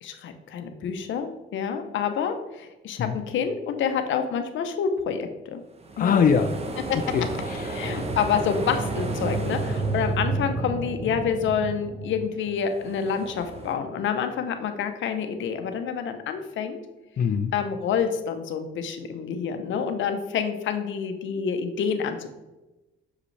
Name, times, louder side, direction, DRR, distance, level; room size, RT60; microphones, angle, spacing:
voice 1, 0.0-5.6 6.0-6.2 7.7-16.8 17.5-22.3, left 7 dB, 75° left, 7 dB, 0.8 m, -28 dB
sound 1, 5.8-13.7, right 3 dB, 30° right, 0.9 m, -31 dB
voice 2, 6.0-6.5 7.1-8.0 17.2-17.5, left 6 dB, 45° left, 6 dB, 0.5 m, -23 dB
6.7 x 4.9 x 3.3 m, 1.0 s
cardioid pair, 90°, 20 cm